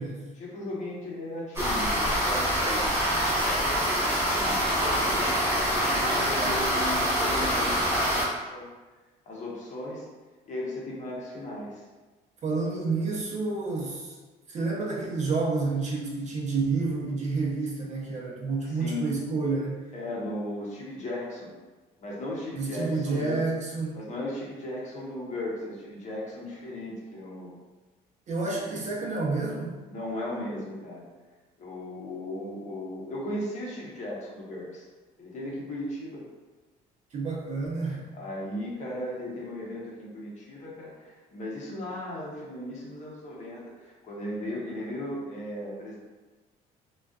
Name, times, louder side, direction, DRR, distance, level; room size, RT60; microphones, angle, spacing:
voice 1, 0.4-5.2 5.9-8.7 9.3-10.1 10.5-11.8 18.6-19.1 19.9-21.6 22.0-23.4 23.9-27.5 29.9-31.0 31.6-34.9 35.2-36.3 38.1-46.0, left 1 dB, 45° left, -4 dB, 0.7 m, -36 dB
sound 1, 1.5-8.2, equal, 15° right, 1.0 m, -25 dB
voice 2, 12.4-14.2 14.5-19.8 22.5-24.0 28.3-29.7 37.1-38.1, right 3 dB, 45° right, -4 dB, 0.7 m, -29 dB
2.5 x 2.3 x 2.3 m, 1.3 s
cardioid pair, 110°, 17 cm